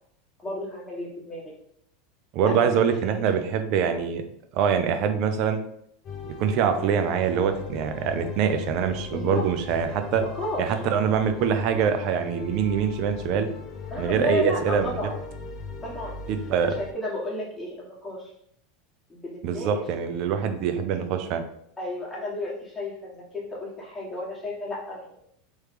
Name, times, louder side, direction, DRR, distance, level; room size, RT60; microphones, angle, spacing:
voice 1, 0.4-1.5 2.4-2.8 3.0-3.2 9.1-9.4 10.2-10.6 13.9-15.2 15.8-16.2 16.8-18.3 19.1-19.8 21.8-25.2, left 1 dB, 15° left, -5 dB, 1.5 m, -33 dB
voice 2, 2.3-4.2 4.5-5.6 6.2-10.2 10.6-13.5 14.0-14.9 16.3-16.8 19.4-21.5, right 7 dB, 55° right, 8 dB, 0.5 m, -24 dB
sound 1, 6.0-16.9, left 6 dB, 40° left, 0.6 m, -38 dB
3.1 x 3.1 x 3.3 m, 0.70 s
hypercardioid pair, 105°, 0 cm